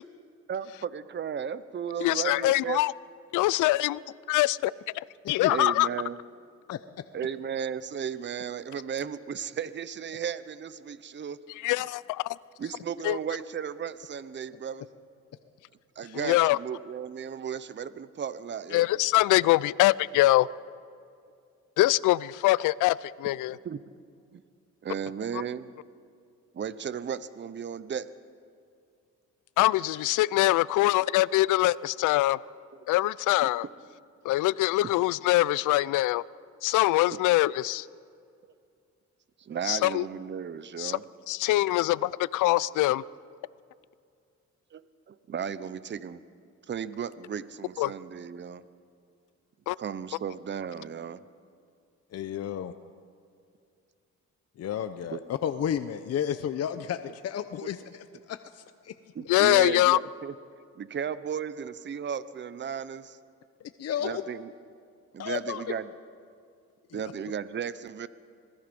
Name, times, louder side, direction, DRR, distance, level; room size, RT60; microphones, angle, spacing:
voice 1, 0.5-2.8 5.5-6.2 7.1-11.4 12.6-14.9 16.0-18.9 23.6-23.8 24.3-24.4 24.8-25.7 26.5-28.1 37.1-37.2 39.4-41.0 44.7-44.8 45.1-46.2 46.7-48.6 49.8-51.2 55.1-55.2 57.6-57.7 59.1-60.3 60.8-63.2 64.0-64.5 65.1-65.9 66.9-68.1, right 8 dB, 40° right, 15 dB, 0.8 m, -35 dB
voice 2, 2.0-2.9 3.3-4.0 4.3-5.9 11.6-12.4 13.0-13.2 16.1-16.6 18.7-20.5 21.8-23.6 25.3-25.4 29.6-32.4 32.9-33.7 34.2-36.2 36.6-37.9 39.7-40.0 40.8-41.0 41.3-43.0 47.8-47.9 49.7-49.8 59.3-60.0, left 17 dB, 85° left, 21 dB, 0.5 m, -23 dB
voice 3, 52.1-52.7 54.6-58.9 63.8-64.2 65.2-65.6 66.9-67.0, left 9 dB, 55° left, 10 dB, 0.8 m, -32 dB
26.0 x 19.5 x 5.3 m, 2.3 s
cardioid pair, 90°, 30 cm